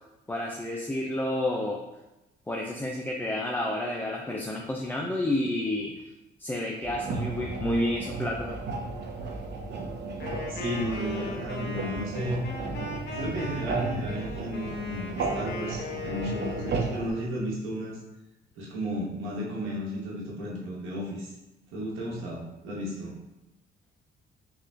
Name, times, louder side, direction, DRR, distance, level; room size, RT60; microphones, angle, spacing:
voice 1, 0.3-1.8 2.5-6.1 6.4-8.6, left 1 dB, 10° left, -1 dB, 0.4 m, -30 dB
sound 1, 6.8-17.1, right 4 dB, 60° right, 0.7 m, -34 dB
Wind instrument woodwind instrument, 10.2-16.9, left 4 dB, 55° left, 0.8 m, -38 dB
voice 2, 10.5-12.4 13.1-18.0 18.6-21.3 21.7-23.1, equal, 90° right, -4 dB, 1.1 m, -33 dB
3.6 x 2.4 x 3.2 m, 0.97 s
cardioid pair, 90°, 20 cm